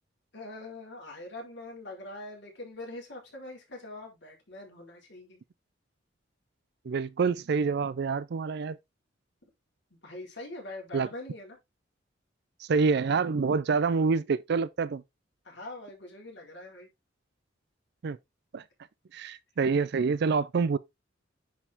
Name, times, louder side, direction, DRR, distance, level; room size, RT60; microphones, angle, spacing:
voice 1, 0.3-5.4 10.0-11.6 15.4-16.9, left 2 dB, 60° left, 4.1 m, -43 dB
voice 2, 6.8-8.8 10.9-11.1 12.6-15.0 18.0-18.2 18.5-18.6 19.1-20.8, right 5 dB, 55° right, 0.4 m, -27 dB
10.0 x 4.7 x 3.5 m
head